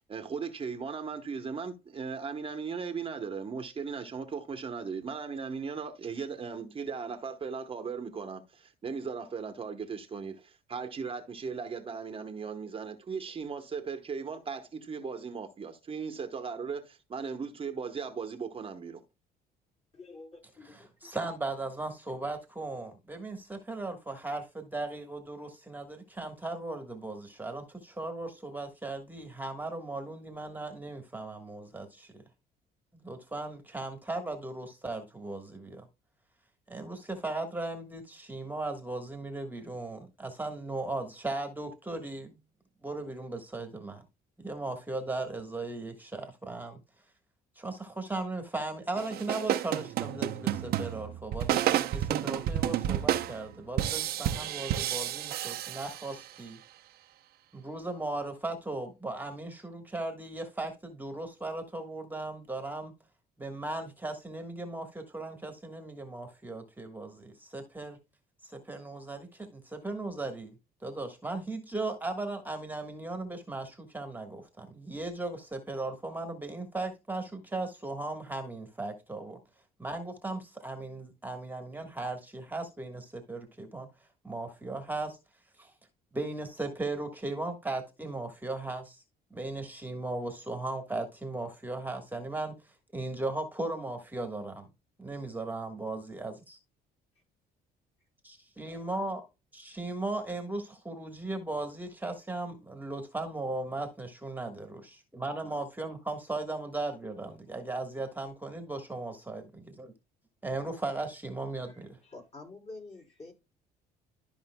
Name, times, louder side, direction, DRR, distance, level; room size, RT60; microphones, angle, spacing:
voice 1, 0.1-19.0, right 5 dB, 35° right, 1.0 m, -37 dB
voice 2, 19.9-21.1 111.6-113.3, left 3 dB, 35° left, 3.9 m, -49 dB
voice 3, 20.7-32.1 33.0-35.8 36.7-42.4 42.8-44.0 44.4-46.8 47.5-56.6 57.5-62.9 63.4-68.0 68.4-70.6 70.8-79.4 79.8-83.9 84.2-85.2 85.6-85.7 86.1-89.0 89.3-94.7 95.0-96.6 98.2-99.2 99.5-109.9 110.4-112.0, right 2 dB, 10° right, 1.3 m, -37 dB
sound 1, 49.0-56.4, right 12 dB, 65° right, 0.7 m, -31 dB
13.0 x 5.2 x 2.2 m
cardioid pair, 110°, 17 cm